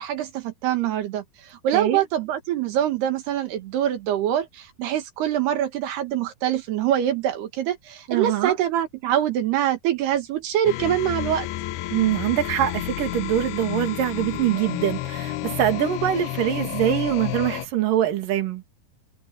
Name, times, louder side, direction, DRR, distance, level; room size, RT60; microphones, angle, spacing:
voice 1, 0.0-11.5, right 11 dB, 80° right, 3.7 m, -24 dB
voice 2, 8.1-8.6 11.9-18.6, right 11 dB, 60° right, 3.8 m, -23 dB
sound 1, 10.7-17.7, left 15 dB, 85° left, 2.8 m, -31 dB
omnidirectional pair, 4.6 m